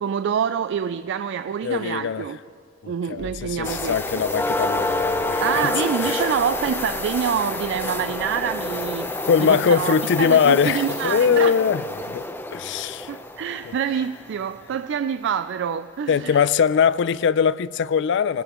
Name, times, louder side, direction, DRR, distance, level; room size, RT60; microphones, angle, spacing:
voice 1, 0.0-2.4 2.9-4.2 5.4-11.5 13.1-16.4, right 7 dB, 65° right, 0.3 m, -26 dB
voice 2, 1.6-2.3 2.8-5.7 6.0-6.3 9.2-12.2 12.5-13.1 16.1-18.4, left 7 dB, 65° left, 0.4 m, -21 dB
sound 1, 3.2-14.8, equal, 45° right, 2.0 m, -49 dB
sound 2, 3.6-14.3 16.3-16.4 16.9-17.1, left 2 dB, 10° left, 0.7 m, -28 dB
25.5 x 18.5 x 3.0 m
head